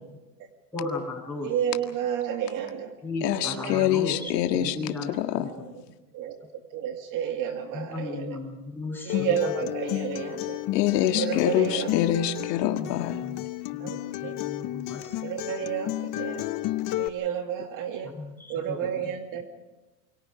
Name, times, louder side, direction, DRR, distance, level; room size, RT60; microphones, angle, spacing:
voice 1, 0.7-1.5 3.0-5.5 7.7-9.4 12.8-12.9 13.2-15.2 15.5-15.6 18.2-18.8, left 3 dB, 5° left, -1 dB, 7.9 m, -36 dB
voice 2, 1.4-3.0 3.4-3.9 4.2-4.7 6.1-8.4 9.0-10.6 11.1-11.9 13.3-13.4 13.8-14.3 15.2-16.5 17.0-18.1 18.5-19.4, right 9 dB, 40° right, 5 dB, 2.2 m, -31 dB
voice 3, 3.2-5.5 10.7-13.2, left 12 dB, 75° left, 6 dB, 2.0 m, -25 dB
Acoustic guitar, 9.1-17.1, left 16 dB, 40° left, 1.0 m, -32 dB
28.5 x 24.0 x 5.1 m, 1.1 s
supercardioid pair, 135°, 50 cm